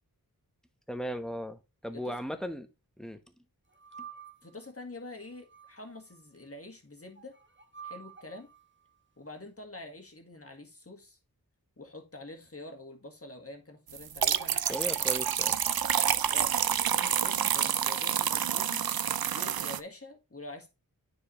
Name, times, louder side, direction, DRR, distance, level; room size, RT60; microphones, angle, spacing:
voice 1, 0.9-2.7 3.0-3.2 4.0-4.1 14.7-15.6, equal, ahead, 1.0 m, -37 dB
sound 1, 3.8-4.6 5.3-6.2 7.2-8.6, right 8 dB, 30° right, 1.1 m, -49 dB
voice 2, 4.4-7.3 7.8-8.5 9.2-11.2 11.8-14.8 16.2-18.9 19.3-20.7, left 2 dB, 40° left, 1.7 m, -46 dB
sound 2, 14.0-19.8, right 9 dB, 75° right, 0.5 m, -28 dB
9.6 x 4.7 x 3.1 m
wide cardioid pair, 50°, 37 cm